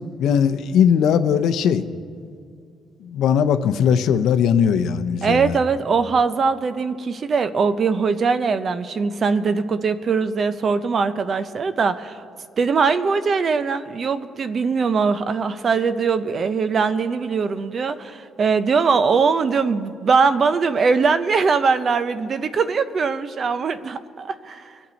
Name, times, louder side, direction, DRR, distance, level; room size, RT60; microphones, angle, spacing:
voice 1, 0.2-1.9 3.0-5.6, left 8 dB, 70° left, 9 dB, 0.7 m, -19 dB
voice 2, 5.2-12.2 12.6-24.7, right 5 dB, 40° right, 12 dB, 0.7 m, -21 dB
26.0 x 8.7 x 4.1 m, 2.3 s
cardioid pair, 130°, 0 cm